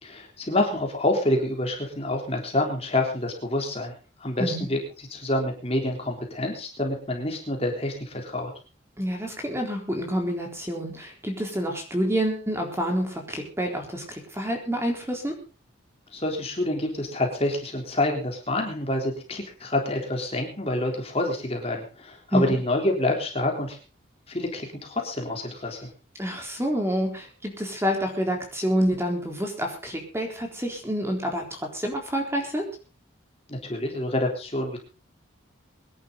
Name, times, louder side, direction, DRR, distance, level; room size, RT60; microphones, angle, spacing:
voice 1, 0.0-3.9 4.2-4.8 5.1-8.5 16.1-23.8 24.3-25.9 33.5-34.8, left 1 dB, 30° left, 2 dB, 3.6 m, -27 dB
voice 2, 9.0-15.3 22.3-22.5 26.2-32.6, equal, 15° right, 2 dB, 3.8 m, -28 dB
23.5 x 11.0 x 3.9 m, 0.35 s
head